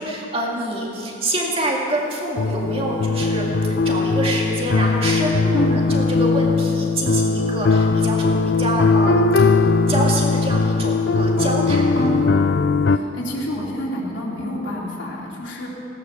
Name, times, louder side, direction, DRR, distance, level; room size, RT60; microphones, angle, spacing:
voice 1, 0.0-9.5 9.9-12.1, right 1 dB, 30° right, -1 dB, 2.1 m, -26 dB
sound 1, 2.4-13.0, left 4 dB, 55° left, 0.4 m, -19 dB
voice 2, 12.8-15.7, left 1 dB, 70° left, -4 dB, 2.7 m, -28 dB
17.0 x 11.0 x 6.9 m, 2.8 s
head